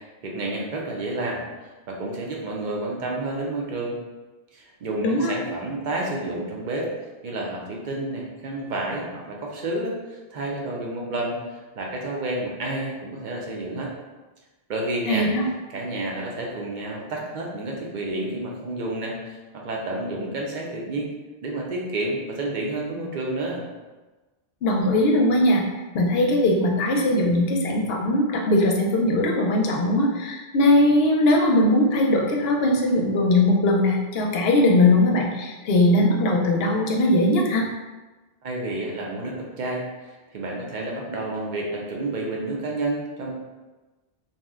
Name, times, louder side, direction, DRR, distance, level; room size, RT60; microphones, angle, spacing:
voice 1, 0.2-1.4 1.9-4.0 4.5-6.9 7.2-13.9 14.7-15.3 15.7-21.1 21.4-23.6 38.4-43.3, right 2 dB, 55° right, -1 dB, 0.6 m, -30 dB
voice 2, 5.0-5.3 15.1-15.4 24.6-25.6 25.9-37.7, left 1 dB, 75° left, -1 dB, 0.8 m, -20 dB
2.7 x 2.0 x 3.5 m, 1.2 s
omnidirectional pair, 1.1 m